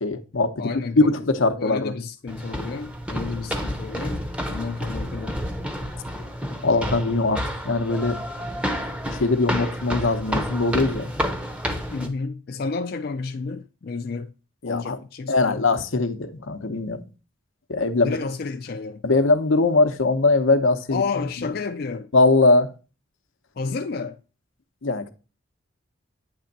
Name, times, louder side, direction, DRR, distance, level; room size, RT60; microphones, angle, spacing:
voice 1, 0.0-1.9 6.6-8.2 9.2-11.1 14.6-15.0 15.3-17.0 17.7-18.2 19.0-21.0 22.1-22.7 24.8-25.1, left 3 dB, 80° left, 0.8 m, -21 dB
voice 2, 0.6-5.4 11.9-14.3 14.6-15.7 18.0-19.0 20.9-22.1 23.6-24.2, left 4 dB, 50° left, 0.4 m, -31 dB
sound 1, 2.3-12.1, equal, 5° right, 0.7 m, -30 dB
8.7 x 3.4 x 4.0 m
head